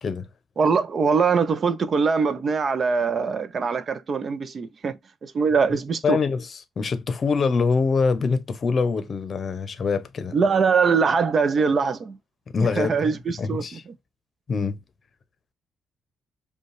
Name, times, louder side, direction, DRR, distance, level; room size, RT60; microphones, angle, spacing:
voice 1, 0.6-6.2 10.3-12.2 12.6-13.8, right 5 dB, 45° right, 0.6 m, -22 dB
voice 2, 6.0-10.4 12.5-13.1 13.4-13.8 14.5-14.8, left 5 dB, 45° left, 0.7 m, -24 dB
5.2 x 2.3 x 3.2 m
cardioid pair, 95°, 0 cm